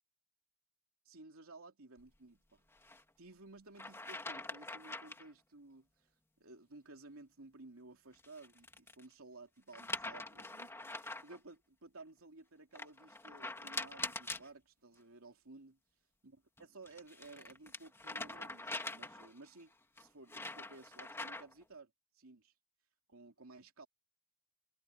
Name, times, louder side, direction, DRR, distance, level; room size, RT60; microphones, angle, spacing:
voice 1, 1.0-2.6 3.2-6.1 6.4-15.8 16.2-22.5 23.1-23.9, right 3 dB, 80° right, 2.8 m, -56 dB
sound 1, 2.7-3.0 3.8-5.3 8.1-9.0 9.7-11.4 12.8-14.5 16.6-19.4 20.0-21.6, left 2 dB, 10° left, 2.3 m, -44 dB
head